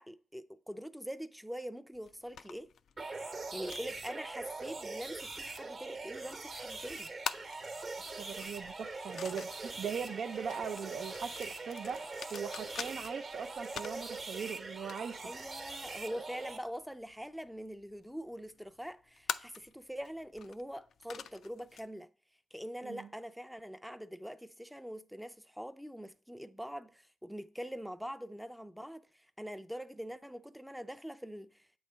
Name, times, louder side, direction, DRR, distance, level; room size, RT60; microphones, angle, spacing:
voice 1, 0.0-2.7 3.5-7.1 15.2-22.1 22.5-31.6, equal, ahead, 0.4 m, -44 dB
sound 1, 1.9-21.9, left 7 dB, 70° left, 0.3 m, -48 dB
sound 2, 3.0-16.6, right 3 dB, 40° right, 1.0 m, -42 dB
voice 2, 8.1-15.3 22.8-23.1, right 6 dB, 70° right, 0.4 m, -40 dB
8.0 x 3.2 x 5.6 m
cardioid pair, 85°, 0 cm